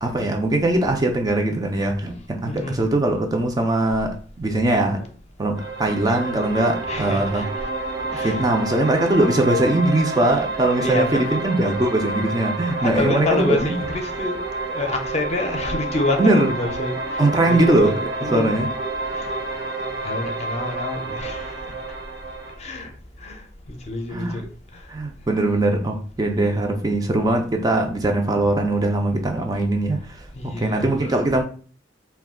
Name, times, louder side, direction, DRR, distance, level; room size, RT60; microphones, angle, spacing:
voice 1, 0.0-5.0 5.4-7.5 8.1-13.6 16.2-16.5 17.2-18.7 24.1-24.4 24.9-30.0 30.4-31.4, right 1 dB, 20° right, 0.4 m, -21 dB
voice 2, 2.5-2.8 6.8-7.5 8.1-8.5 10.8-11.4 12.8-14.4 14.7-18.6 19.1-19.3 20.0-21.7 22.6-22.9 23.2-24.9 30.4-31.2, left 2 dB, 35° left, 0.5 m, -28 dB
sound 1, 5.6-22.5, right 2 dB, 80° right, 1.1 m, -29 dB
2.4 x 2.2 x 3.5 m
head